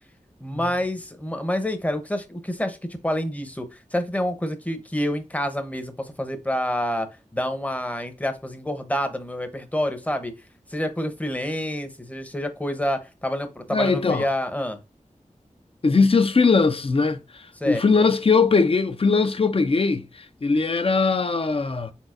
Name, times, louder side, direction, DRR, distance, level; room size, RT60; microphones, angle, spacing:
voice 1, 0.4-10.3 10.7-14.8 17.6-17.8, left 1 dB, 10° left, 0.8 m, -28 dB
voice 2, 13.7-14.3 15.8-21.9, left 4 dB, 45° left, 0.6 m, -20 dB
4.5 x 3.9 x 2.5 m
wide cardioid pair, 70°, 13 cm